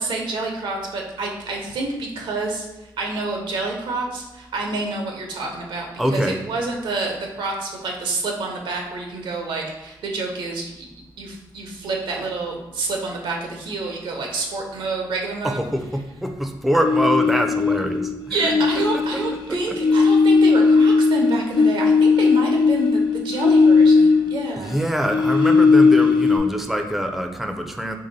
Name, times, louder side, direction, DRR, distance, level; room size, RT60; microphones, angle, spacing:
voice 1, 0.0-2.7 3.0-10.9 11.2-15.6 18.3-24.7, right 3 dB, 85° right, 1 dB, 0.7 m, -28 dB
voice 2, 6.0-6.4 15.4-18.5 24.6-28.0, equal, ahead, 5 dB, 0.4 m, -24 dB
sound 1, 16.8-18.1 18.4-24.5 24.8-26.4, left 4 dB, 75° left, 0.5 m, -17 dB
2.9 x 2.7 x 3.9 m, 1.0 s
cardioid pair, 65°, 8 cm